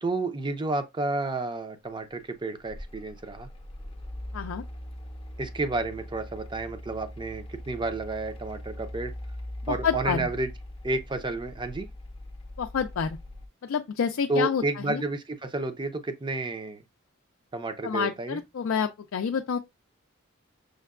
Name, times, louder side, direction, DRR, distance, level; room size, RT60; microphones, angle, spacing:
voice 1, 0.0-3.5 5.4-9.1 9.7-10.5 10.8-11.9 14.3-16.8 17.5-18.4, right 2 dB, 20° right, 0.6 m, -31 dB
Mechanical fan, 2.2-13.5, left 1 dB, 25° left, 0.6 m, -41 dB
voice 2, 9.7-10.3 12.6-13.2 13.6-15.0 17.8-19.6, left 6 dB, 65° left, 0.4 m, -28 dB
6.4 x 2.2 x 2.3 m
head